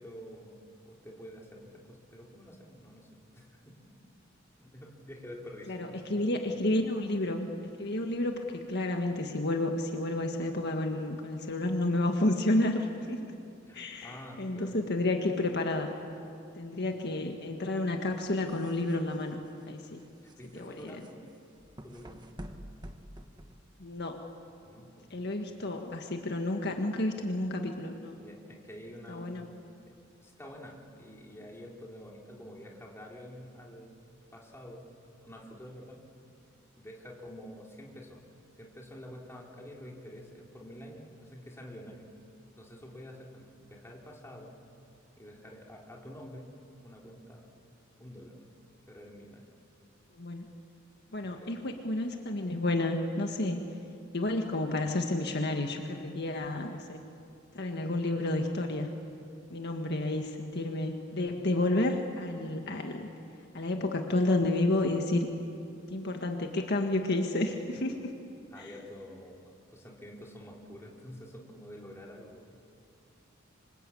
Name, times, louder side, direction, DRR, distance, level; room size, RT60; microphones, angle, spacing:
voice 1, 0.0-3.9 4.6-6.3 13.7-14.7 20.2-21.2 21.8-22.2 24.6-25.4 28.2-29.5 29.8-33.9 34.3-34.9 35.2-36.0 36.8-38.2 38.6-42.1 42.5-44.6 45.2-46.5 46.8-47.5 48.0-48.4 48.9-49.5 51.2-51.5 68.5-72.6, equal, 15° left, -2 dB, 3.9 m, -48 dB
voice 2, 5.7-7.5 7.8-13.2 13.7-15.9 16.5-19.4 19.7-20.0 20.5-21.0 23.8-24.2 25.1-28.1 29.1-29.5 50.2-50.5 51.1-53.6 54.1-57.0 57.5-58.9 59.5-63.1 63.5-65.3 65.9-68.1 68.6-68.7, left 2 dB, 55° left, 3 dB, 1.7 m, -31 dB
sound 1, 18.1-24.0, equal, 20° right, 1.5 m, -49 dB
27.5 x 25.0 x 8.6 m, 2.6 s
head